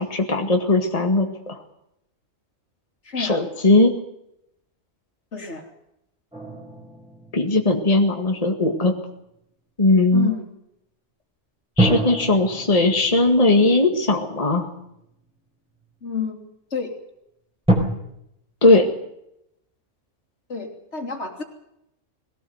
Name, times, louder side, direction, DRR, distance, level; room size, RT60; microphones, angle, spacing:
voice 1, 0.0-1.6 3.2-3.9 7.3-8.9 9.8-10.3 11.8-14.7 18.6-18.9, left 2 dB, 30° left, 3 dB, 2.1 m, -18 dB
voice 2, 3.0-3.4 5.3-5.7 10.1-10.4 16.0-16.4 16.7-16.9 20.5-21.4, left 5 dB, 65° left, 3 dB, 3.4 m, -29 dB
sound 1, 6.3-8.9 11.8-15.1 15.8-15.9 17.7-17.8, right 1 dB, 5° right, 4.7 m, -27 dB
21.5 x 17.5 x 8.0 m, 0.80 s
omnidirectional pair, 1.3 m